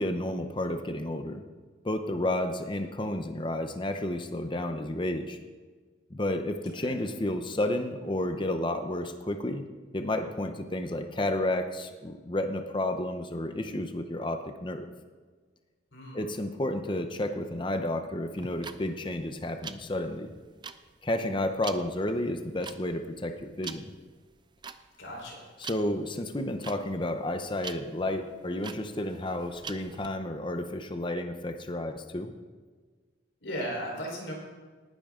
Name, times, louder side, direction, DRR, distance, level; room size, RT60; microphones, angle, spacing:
voice 1, 0.0-1.4 1.8-5.4 6.1-9.6 9.9-14.9 16.1-20.3 21.0-23.9 25.6-32.3, left 1 dB, 25° left, 6 dB, 0.7 m, -31 dB
voice 2, 15.9-16.3 25.0-25.5 33.4-34.3, equal, 70° left, -1 dB, 4.1 m, -37 dB
sound 1, 18.3-30.1, right 6 dB, 25° right, 0.4 m, -44 dB
19.0 x 10.5 x 3.7 m, 1.4 s
head